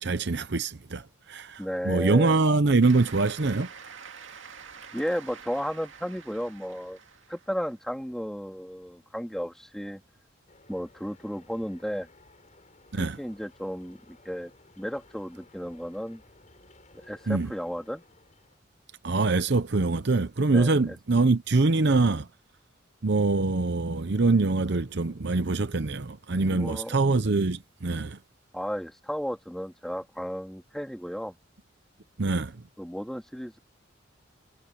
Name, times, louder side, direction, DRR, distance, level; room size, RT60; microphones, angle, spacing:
voice 1, 0.0-3.7 12.9-13.2 17.3-17.5 19.0-22.3 23.0-28.2 32.2-32.6, right 3 dB, 60° right, 0.8 m, -24 dB
voice 2, 1.6-2.4 4.9-7.0 7.3-10.0 10.7-12.1 13.0-14.5 14.8-16.2 16.9-18.0 20.5-21.0 26.5-27.1 28.5-31.4 32.8-33.6, equal, ahead, 3.4 m, -34 dB
Cheering / Applause, 2.8-7.7, right 6 dB, 80° right, 2.2 m, -47 dB
sound 1, 10.5-18.6, left 2 dB, 40° left, 7.8 m, -57 dB
head